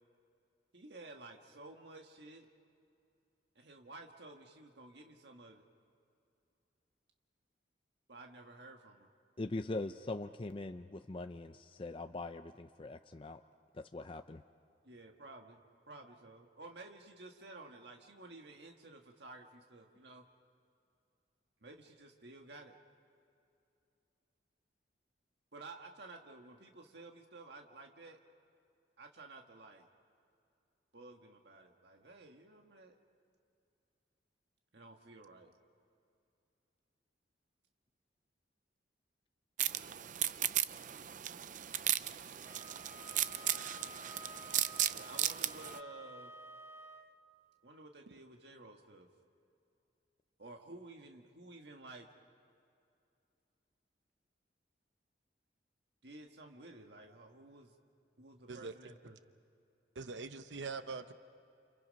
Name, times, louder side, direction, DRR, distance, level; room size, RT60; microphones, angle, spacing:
voice 1, 0.7-2.5 3.6-5.6 8.1-9.1 14.8-15.6 15.9-20.2 21.6-22.8 25.5-28.2 29.0-29.9 30.9-32.9 34.7-35.5 44.9-46.3 47.6-49.1 50.4-52.1 56.0-57.8 58.2-59.2, right 2 dB, 65° right, 3 dB, 1.7 m, -53 dB
voice 2, 9.4-13.4 13.7-14.4, left 2 dB, 30° left, 8 dB, 0.5 m, -42 dB
sound 1, 39.6-45.8, right 12 dB, 45° right, 0.5 m, -36 dB
Wind instrument woodwind instrument, 42.4-47.2, left 1 dB, 15° right, 1.1 m, -52 dB
voice 3, 59.9-61.1, right 4 dB, 85° right, 10 dB, 0.9 m, -42 dB
30.0 x 29.0 x 5.3 m, 2.6 s
head